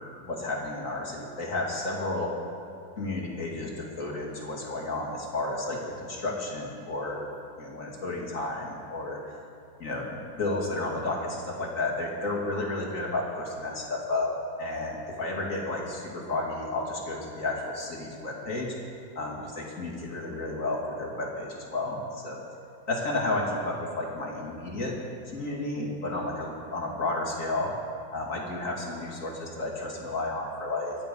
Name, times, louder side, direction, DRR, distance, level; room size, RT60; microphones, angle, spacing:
voice 1, 0.0-2.3 3.0-7.3 7.6-9.2 9.8-10.1 10.4-14.3 14.6-18.7 19.2-22.4 22.9-25.0 25.3-27.7 28.1-31.0, left 2 dB, 40° left, -2 dB, 2.8 m, -32 dB
24.0 x 10.5 x 5.4 m, 2.6 s
omnidirectional pair, 2.1 m